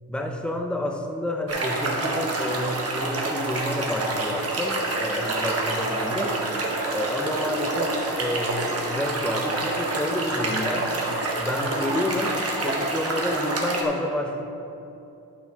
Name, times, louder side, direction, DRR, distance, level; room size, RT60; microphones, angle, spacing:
voice 1, 0.1-6.4 6.9-10.9 11.3-14.4, left 1 dB, 5° left, 3 dB, 0.5 m, -29 dB
sound 1, 1.5-13.8, right 2 dB, 40° right, 1.0 m, -27 dB
11.5 x 5.9 x 3.4 m, 2.8 s
wide cardioid pair, 160°, 39 cm